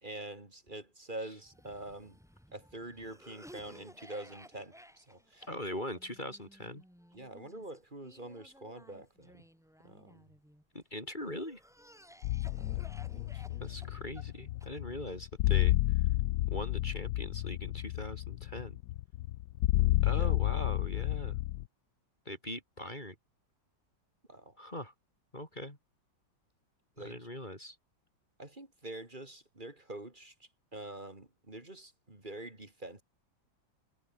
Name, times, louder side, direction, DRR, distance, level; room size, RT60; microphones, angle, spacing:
voice 1, 0.0-2.2 2.5-5.5 7.1-9.4 9.8-10.3 12.6-12.9 13.1-14.0 14.9-15.0 20.0-20.4 21.2-21.4 24.3-24.6 27.0-27.2 28.4-30.3 30.7-33.0, right 1 dB, 25° right, 3.7 m, -46 dB
Cough, 1.4-10.6 11.2-15.1, equal, ahead, 5.2 m, -57 dB
voice 2, 5.5-6.8 10.7-11.6 13.6-15.7 16.5-18.8 20.0-21.4 22.2-23.1 24.6-24.9 25.3-25.8 27.0-27.8, left 1 dB, 20° left, 5.0 m, -41 dB
sound 1, 12.2-21.6, left 16 dB, 75° left, 1.2 m, -31 dB
omnidirectional pair, 2.1 m